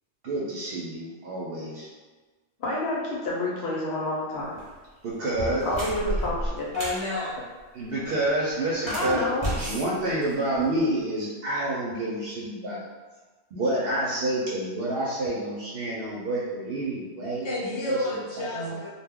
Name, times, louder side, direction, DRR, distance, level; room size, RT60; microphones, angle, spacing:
voice 1, 0.2-1.9 5.0-5.7 7.7-9.2 9.6-12.8 13.5-17.6 17.9-18.0 18.4-18.5, right 1 dB, 65° right, -5 dB, 0.7 m, -28 dB
voice 2, 2.6-4.6 5.6-6.7 8.9-9.5 18.5-18.8, left 1 dB, 70° left, -4 dB, 0.9 m, -29 dB
sound 1, 4.4-4.7 5.2-7.1 8.7-10.8, equal, 30° right, 0.7 m, -32 dB
voice 3, 6.7-7.4 17.4-18.9, left 2 dB, 40° left, -7 dB, 0.4 m, -30 dB
2.2 x 2.2 x 3.4 m, 1.3 s
omnidirectional pair, 1.1 m